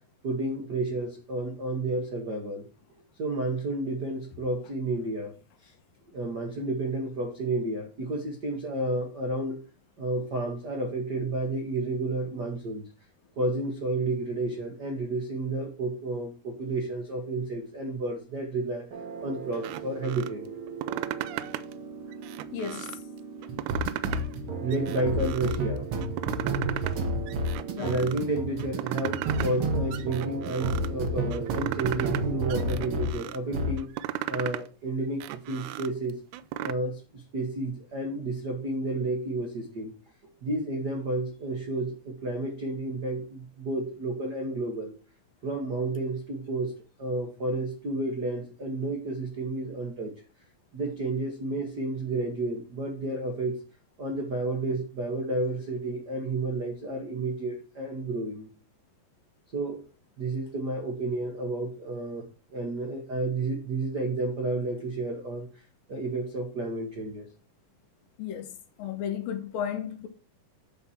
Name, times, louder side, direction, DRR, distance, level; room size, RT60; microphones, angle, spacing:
voice 1, 0.2-2.6 3.2-5.3 5.6-5.7 6.1-9.6 10.0-12.9 13.4-18.8 19.2-20.5 24.6-25.9 27.8-33.9 34.3-36.2 36.6-39.9 40.4-44.9 45.4-50.1 50.7-53.6 54.0-58.5 59.5-59.8 60.2-62.2 62.5-65.5 65.9-67.3, right 2 dB, 75° right, 0.9 m, -31 dB
sound 1, 18.9-33.2 33.5-33.8, right 2 dB, 60° right, 1.5 m, -32 dB
sound 2, 19.5-20.3 20.7-21.7 22.1-23.0 23.4-24.4 24.7-25.6 26.0-27.0 27.3-28.2 28.6-29.6 29.9-30.9 31.3-32.2 32.5-33.4 33.8-34.7 35.0-36.7, right 13 dB, 90° right, 1.7 m, -36 dB
voice 2, 22.5-23.0 27.7-28.0 68.2-68.5 68.8-70.1, left 8 dB, 75° left, 3.0 m, -33 dB
9.5 x 4.2 x 7.2 m
omnidirectional pair, 4.1 m